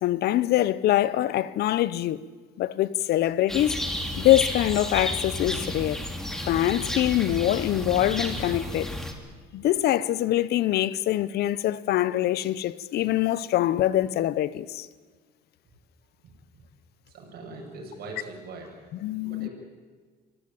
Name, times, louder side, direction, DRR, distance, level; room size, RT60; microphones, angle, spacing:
voice 1, 0.0-2.2 2.6-3.8 4.2-6.0 6.5-8.9 9.5-14.9 19.0-19.5, left 14 dB, 70° left, 0.9 m, -24 dB
sound 1, 3.5-9.1, equal, 5° left, 2.9 m, -32 dB
voice 2, 17.1-18.7 19.2-19.5, right 3 dB, 65° right, 7.2 m, -41 dB
25.0 x 17.0 x 8.9 m
cardioid pair, 110°, 17 cm